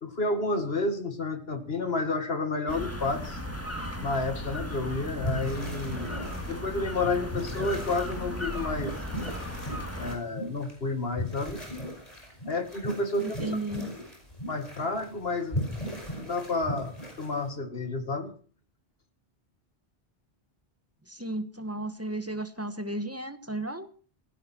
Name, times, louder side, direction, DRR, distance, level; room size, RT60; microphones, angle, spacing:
voice 1, 0.0-3.4 4.0-6.2 6.5-9.0 10.0-11.6 12.5-13.4 14.5-15.8 16.1-18.3, left 3 dB, 60° left, 7 dB, 2.4 m, -30 dB
sound 1, 2.7-10.2, left 1 dB, 15° left, 2.3 m, -36 dB
sound 2, 4.7-4.8 5.0-17.5, equal, 35° left, 5.7 m, -37 dB
voice 2, 13.2-13.9 21.1-23.9, right 1 dB, 15° right, 10 dB, 1.3 m, -34 dB
17.0 x 15.5 x 4.5 m, 0.41 s
omnidirectional pair, 1.1 m